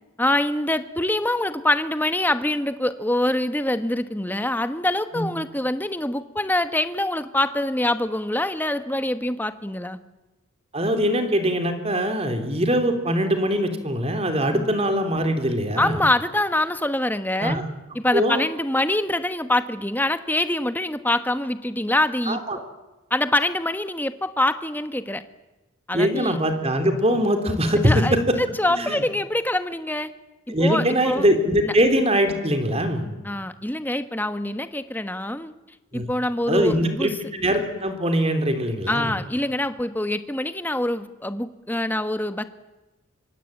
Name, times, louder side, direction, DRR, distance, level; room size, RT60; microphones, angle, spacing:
voice 1, 0.2-10.0 14.5-14.7 15.8-17.6 17.9-22.4 23.1-25.2 25.9-26.4 27.8-28.2 28.6-30.1 30.6-31.2 33.2-35.5 35.9-37.1 38.9-42.4, left 1 dB, 10° left, 11 dB, 1.2 m, -24 dB
voice 2, 10.7-16.0 17.4-17.6 18.1-18.4 22.3-22.6 25.9-28.4 28.7-29.0 30.5-33.1 35.9-36.1 36.5-39.2, equal, 30° right, 7 dB, 3.4 m, -22 dB
25.0 x 24.0 x 8.9 m, 1.1 s
head